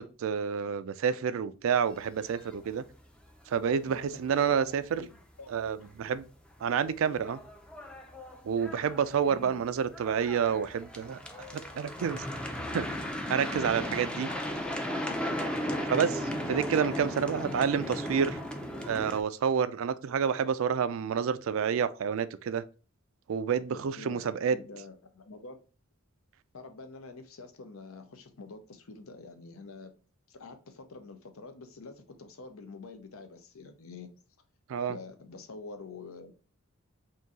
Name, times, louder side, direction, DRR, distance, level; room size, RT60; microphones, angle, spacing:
voice 1, 0.0-2.8 3.5-5.1 5.5-6.3 6.6-7.4 8.4-11.2 11.5-12.2 12.7-12.9 13.3-14.3 15.9-18.4 18.9-22.6 23.3-24.6 34.7-35.0, right 7 dB, 65° right, 0.3 m, -29 dB
sound 1, 2.1-2.7 3.0-3.1 3.4-3.6 3.9-4.0 5.8-6.0 6.5-6.6 7.0-19.2, equal, 5° left, 0.5 m, -36 dB
voice 2, 3.8-5.1 5.4-5.5 9.2-9.6 13.6-14.0 16.7-17.7 23.7-25.6 26.5-29.9 30.3-34.1 34.9-36.3, left 3 dB, 75° left, 0.7 m, -47 dB
3.7 x 2.7 x 3.9 m
head